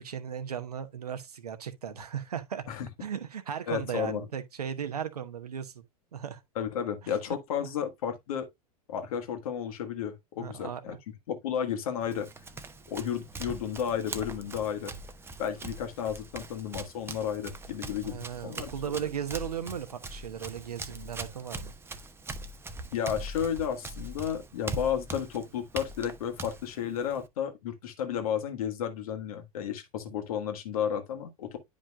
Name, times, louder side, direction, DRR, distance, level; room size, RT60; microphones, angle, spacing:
voice 1, 0.0-2.6 3.0-5.7 6.1-6.4 7.0-7.2 7.6-7.7 10.4-11.0 18.0-21.7, right 8 dB, 85° right, 1.1 m, -36 dB
voice 2, 3.7-4.2 6.5-8.5 8.9-10.9 11.3-12.3 12.9-14.9 15.4-18.9 22.9-31.6, left 8 dB, 65° left, 1.6 m, -32 dB
Run, 12.0-27.3, right 2 dB, 10° right, 0.8 m, -42 dB
9.9 x 5.1 x 2.2 m
hypercardioid pair, 95°, 20 cm